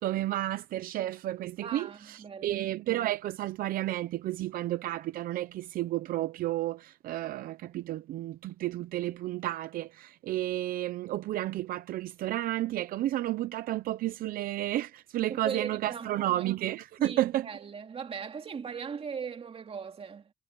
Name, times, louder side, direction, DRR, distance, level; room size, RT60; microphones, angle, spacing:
voice 1, 0.0-17.6, right 14 dB, 85° right, 0.7 m, -32 dB
voice 2, 1.6-2.6 15.3-16.4 17.0-20.3, right 6 dB, 40° right, 2.9 m, -39 dB
cardioid pair, 110°, 14 cm